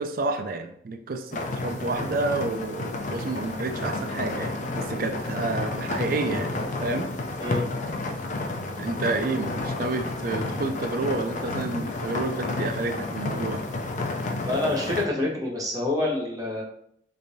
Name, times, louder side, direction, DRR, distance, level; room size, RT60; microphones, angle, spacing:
voice 1, 0.0-6.5 6.8-7.1 8.8-13.6, right 3 dB, 55° right, 7 dB, 0.4 m, -29 dB
sound 1, 1.3-15.0, left 2 dB, 45° left, 0.4 m, -31 dB
voice 2, 14.4-16.6, left 2 dB, 20° right, -4 dB, 0.9 m, -27 dB
3.3 x 3.3 x 2.6 m, 0.71 s
head